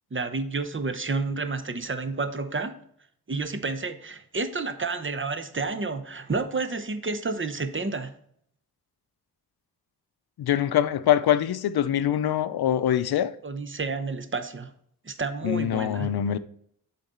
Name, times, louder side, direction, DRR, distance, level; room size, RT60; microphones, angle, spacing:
voice 1, 0.1-2.8 3.3-8.1 13.4-14.7 15.0-16.1, right 3 dB, 35° right, 0.7 m, -30 dB
voice 2, 10.4-13.3 15.4-16.4, left 10 dB, 80° left, 0.5 m, -24 dB
7.2 x 4.0 x 4.2 m
cardioid pair, 50°, 37 cm